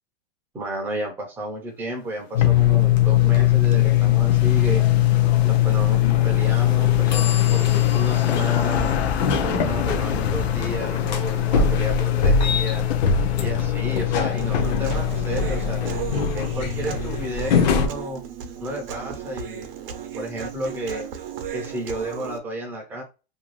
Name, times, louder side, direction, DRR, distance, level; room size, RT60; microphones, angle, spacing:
voice 1, 0.5-4.8 5.4-8.9 9.4-12.8 13.4-15.8 16.3-18.2 18.6-19.7 20.2-21.1 21.5-23.0, right 1 dB, 5° right, 2 dB, 0.4 m, -32 dB
sound 1, 2.0-16.6, left 9 dB, 85° left, 0.6 m, -34 dB
sound 2, 2.3-17.9, left 10 dB, 45° left, 0.6 m, -20 dB
Human voice, 14.4-22.4, right 8 dB, 65° right, 0.7 m, -35 dB
2.6 x 2.2 x 3.0 m, 0.30 s
supercardioid pair, 155°, 31 cm